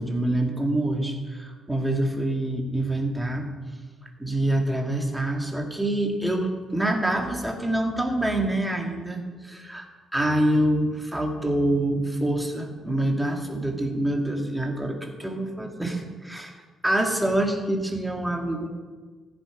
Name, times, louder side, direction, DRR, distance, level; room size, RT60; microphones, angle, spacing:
voice 1, 0.0-3.5 4.2-9.9 10.1-16.6 16.8-18.7, right 1 dB, 5° right, 2 dB, 2.2 m, -26 dB
15.0 x 10.0 x 5.0 m, 1.4 s
cardioid pair, 90°, 0 cm